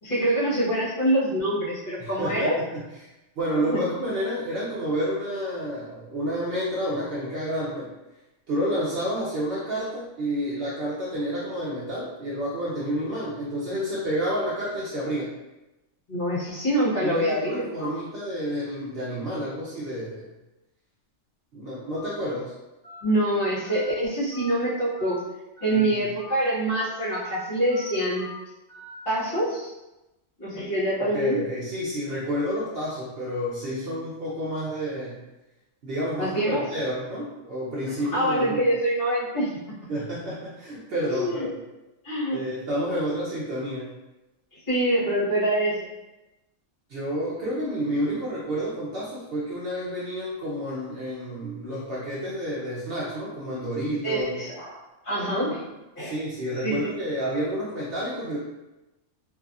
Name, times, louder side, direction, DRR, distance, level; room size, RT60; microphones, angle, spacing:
voice 1, 0.0-2.6 3.7-3.8 16.1-17.9 23.0-25.2 25.6-28.3 29.1-29.7 30.4-31.4 36.2-36.7 38.1-39.5 41.0-41.5 42.0-42.4 44.5-45.9 54.0-55.7 56.0-56.1 56.6-56.8, right 1 dB, 45° left, -9 dB, 1.2 m, -25 dB
voice 2, 2.0-2.8 3.4-7.9 8.5-15.3 17.0-20.3 21.5-22.5 25.7-26.0 31.0-35.2 35.8-38.6 39.9-41.6 42.3-43.9 46.9-54.4 56.0-58.4, equal, 60° right, -7 dB, 0.7 m, -30 dB
Telephone, 21.9-22.1 22.8-23.0 23.6-23.8 24.3-24.5 25.0-25.2 25.6-25.8 26.2-26.3 26.7-26.9 27.2-27.3 27.7-27.9 28.2-28.4 28.7-28.9, left 2 dB, 20° right, 1.2 m, -43 dB
2.6 x 2.4 x 2.4 m, 1.0 s
omnidirectional pair, 1.3 m